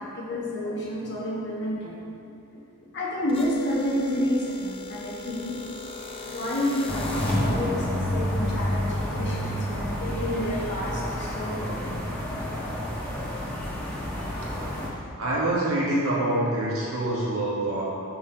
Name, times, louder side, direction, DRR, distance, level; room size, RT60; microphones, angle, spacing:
voice 1, 0.0-2.0 2.9-5.6 6.3-11.9, left 1 dB, 55° left, -5 dB, 1.5 m, -30 dB
sound 1, 3.3-7.7, left 3 dB, 25° left, 0.6 m, -39 dB
sound 2, 6.9-14.9, left 1 dB, 10° left, 1.1 m, -29 dB
voice 2, 15.2-17.8, right 1 dB, 65° right, -6 dB, 1.6 m, -25 dB
6.9 x 4.3 x 5.1 m, 2.5 s
head